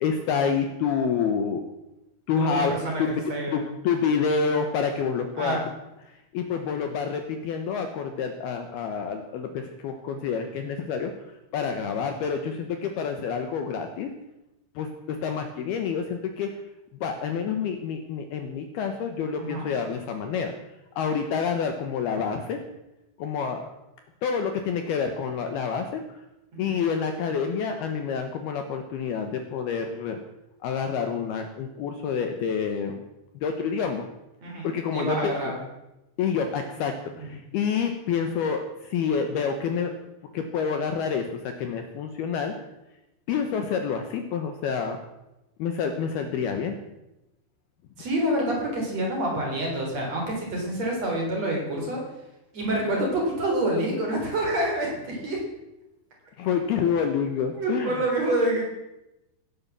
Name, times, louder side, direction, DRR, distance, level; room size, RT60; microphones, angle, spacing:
voice 1, 0.0-1.6 2.3-2.7 3.0-3.2 3.5-5.6 6.3-11.1 11.5-14.1 14.8-16.5 17.0-20.5 21.0-22.6 23.2-23.6 24.2-26.0 26.6-30.2 30.6-33.0 33.4-34.0 34.6-35.4 36.2-36.9 37.2-39.9 40.3-41.3 41.6-42.5 43.3-45.0 45.6-46.8 56.4-57.9, left 6 dB, 70° left, 6 dB, 2.7 m, -28 dB
voice 2, 2.4-3.0 3.3-3.7 5.4-5.6 19.4-19.7 26.5-26.8 34.4-35.6 37.2-37.3 48.0-52.0 52.5-55.4 57.5-58.7, right 1 dB, 35° right, 0 dB, 4.6 m, -27 dB
16.5 x 11.0 x 7.4 m, 0.95 s
omnidirectional pair, 5.4 m